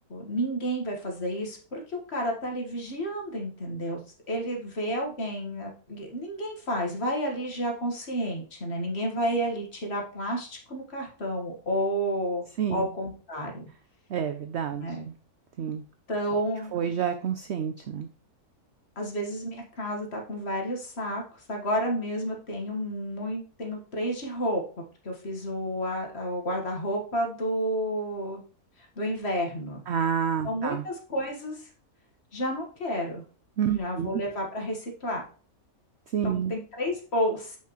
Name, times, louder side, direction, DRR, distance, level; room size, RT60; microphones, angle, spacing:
voice 1, 0.1-4.0 4.3-12.4 12.7-13.6 14.8-15.1 16.1-16.9 19.0-21.2 21.5-24.6 25.0-28.4 29.0-29.8 30.4-31.7 32.3-33.2 33.7-35.2 36.2-37.6, equal, 45° left, 1 dB, 1.8 m, -31 dB
voice 2, 12.6-12.9 14.1-15.1 15.6-15.8 16.7-18.1 29.9-30.8 33.6-34.1 36.1-36.5, right 8 dB, 60° right, 9 dB, 0.7 m, -29 dB
7.4 x 5.6 x 3.0 m, 0.39 s
omnidirectional pair, 1.6 m